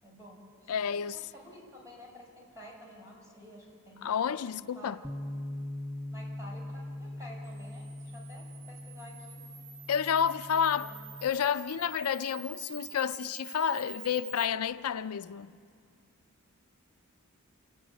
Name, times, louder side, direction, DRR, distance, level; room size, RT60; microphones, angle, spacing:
voice 1, 0.0-4.1 4.4-5.0 6.1-9.4 10.5-10.9, equal, 15° right, 5.2 m, -51 dB
voice 2, 0.7-1.2 4.0-5.0 9.9-10.9 11.2-15.6, left 8 dB, 80° left, 0.4 m, -30 dB
Bass guitar, 5.0-11.3, left 1 dB, 10° left, 0.5 m, -41 dB
Camera, 7.4-14.4, right 7 dB, 40° right, 0.9 m, -48 dB
28.5 x 11.0 x 9.2 m
head